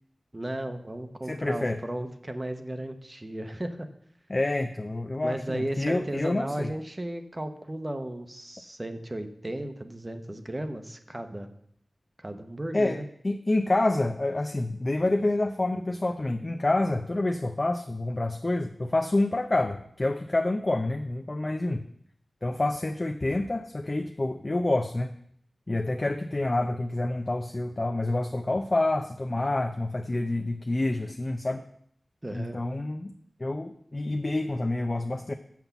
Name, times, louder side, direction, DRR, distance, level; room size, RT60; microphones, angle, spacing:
voice 1, 0.3-3.9 5.2-11.5 12.2-13.1 32.2-32.6, right 1 dB, 25° right, 8 dB, 0.8 m, -35 dB
voice 2, 1.2-1.8 4.3-6.7 12.7-21.8 22.4-25.1 25.7-31.6 32.3-33.1 33.4-35.3, left 2 dB, 35° left, 6 dB, 0.5 m, -28 dB
7.1 x 5.9 x 7.0 m, 0.69 s
wide cardioid pair, 90°, 0 cm